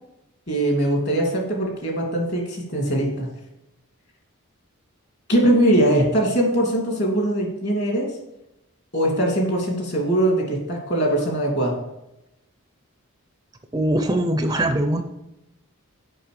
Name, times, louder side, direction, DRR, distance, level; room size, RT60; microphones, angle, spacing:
voice 1, 0.5-3.3 5.3-8.1 8.9-11.8, right 1 dB, 50° left, 0 dB, 2.6 m, -21 dB
voice 2, 13.7-15.0, right 1 dB, 15° right, 7 dB, 0.5 m, -21 dB
7.5 x 5.5 x 6.7 m, 0.89 s
head